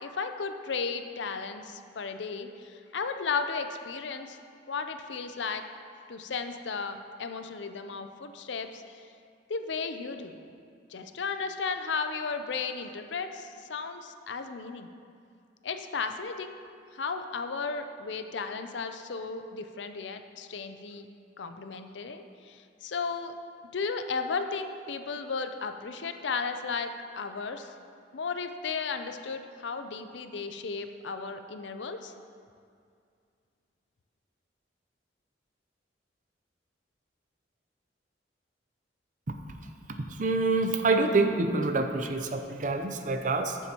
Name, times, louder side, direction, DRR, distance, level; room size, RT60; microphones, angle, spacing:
voice 1, 0.0-4.4 4.7-5.6 6.1-9.0 9.5-10.4 10.9-14.9 15.6-16.6 16.9-21.1 21.4-23.3 23.7-27.7 28.1-32.1, left 5 dB, 80° left, 8 dB, 0.6 m, -34 dB
voice 2, 40.2-43.6, right 3 dB, 45° right, 6 dB, 0.6 m, -26 dB
14.0 x 7.2 x 3.0 m, 2.3 s
head